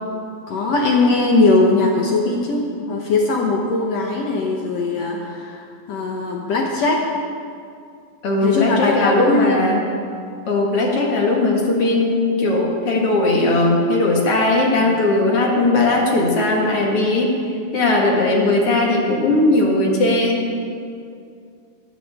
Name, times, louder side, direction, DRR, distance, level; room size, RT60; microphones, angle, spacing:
voice 1, 0.5-7.1 8.4-9.6, left 3 dB, 65° left, 0 dB, 1.8 m, -20 dB
voice 2, 8.2-9.9 10.5-17.4 17.7-20.4, left 2 dB, 45° left, -1 dB, 2.3 m, -18 dB
18.0 x 15.0 x 3.7 m, 2.3 s
omnidirectional pair, 4.1 m